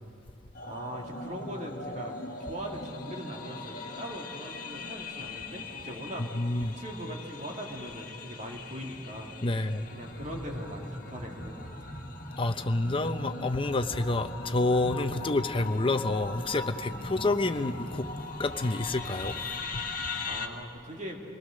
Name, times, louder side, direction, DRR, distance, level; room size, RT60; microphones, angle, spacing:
sound 1, 0.5-20.5, left 3 dB, 50° left, 1.6 m, -40 dB
voice 1, 0.6-6.3 6.6-9.3 9.9-12.0 20.2-21.2, equal, 40° right, 2.4 m, -41 dB
voice 2, 6.2-6.8 9.4-9.9 12.4-18.1 18.4-19.4 19.7-19.9, left 2 dB, 30° left, 0.7 m, -28 dB
26.5 x 19.5 x 6.5 m
head